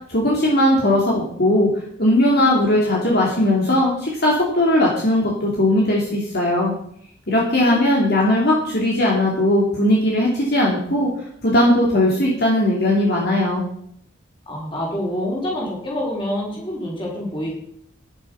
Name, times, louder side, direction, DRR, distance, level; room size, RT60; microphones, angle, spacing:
voice 1, 0.1-1.7 2.0-6.7 7.3-11.1 11.4-13.6, left 1 dB, 55° left, -3 dB, 2.8 m, -18 dB
voice 2, 7.6-8.1 14.5-17.5, equal, 25° left, -3 dB, 5.0 m, -27 dB
10.5 x 10.5 x 5.7 m, 0.68 s
head